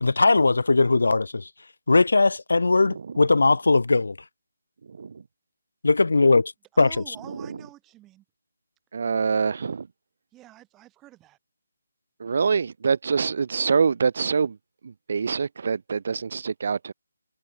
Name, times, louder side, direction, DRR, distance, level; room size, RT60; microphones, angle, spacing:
voice 1, 0.0-1.5 1.9-4.2 5.8-6.5 6.8-6.9, left 3 dB, 70° left, 0.8 m, -19 dB
voice 2, 2.8-3.2 4.8-5.2 7.3-7.6 8.9-9.9 12.2-14.6 14.8-16.9, right 5 dB, 50° right, 1.2 m, -25 dB
voice 3, 6.7-8.2 10.3-11.4, right 15 dB, 15° right, 6.3 m, -47 dB
figure-of-eight pair, 150°, 0 cm